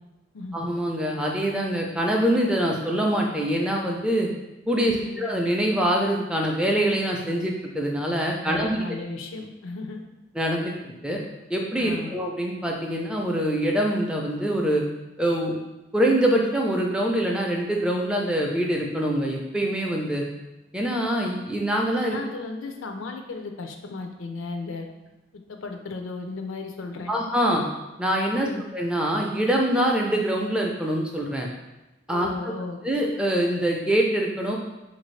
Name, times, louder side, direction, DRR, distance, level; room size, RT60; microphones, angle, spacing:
voice 1, 0.5-4.3 4.7-8.8 10.3-11.2 11.5-14.8 15.2-15.5 15.9-20.2 20.7-22.2 27.1-27.6 28.0-31.5 32.1-32.3 32.8-34.6, right 1 dB, 5° right, -1 dB, 0.4 m, -24 dB
voice 2, 4.9-5.3 8.4-10.0 11.8-12.1 22.0-24.9 25.5-27.1 28.3-28.6 32.1-32.8, left 3 dB, 90° left, 4 dB, 0.5 m, -35 dB
4.2 x 2.6 x 3.1 m, 1.0 s
head